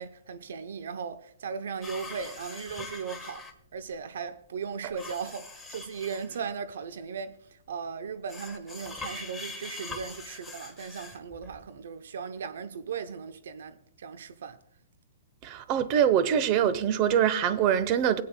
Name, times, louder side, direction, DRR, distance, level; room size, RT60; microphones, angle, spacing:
voice 1, 0.0-3.4 3.7-14.6, right 6 dB, 70° right, 0.7 m, -37 dB
sound 1, 1.8-3.5 4.9-6.5 8.3-11.8, left 3 dB, 5° left, 1.4 m, -42 dB
voice 2, 15.4-18.2, right 9 dB, 40° right, 0.8 m, -24 dB
21.0 x 8.5 x 2.2 m
hypercardioid pair, 130°, 0 cm